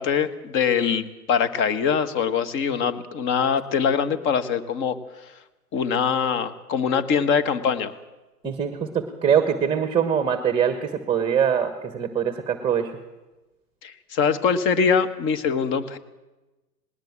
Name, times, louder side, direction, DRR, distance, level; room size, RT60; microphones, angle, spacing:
voice 1, 0.0-5.0 5.7-7.9 13.8-16.0, left 6 dB, 25° left, 12 dB, 1.3 m, -23 dB
voice 2, 8.4-12.9, right 8 dB, 10° right, 9 dB, 1.3 m, -23 dB
19.5 x 18.5 x 7.4 m, 1.1 s
hypercardioid pair, 120°, 48 cm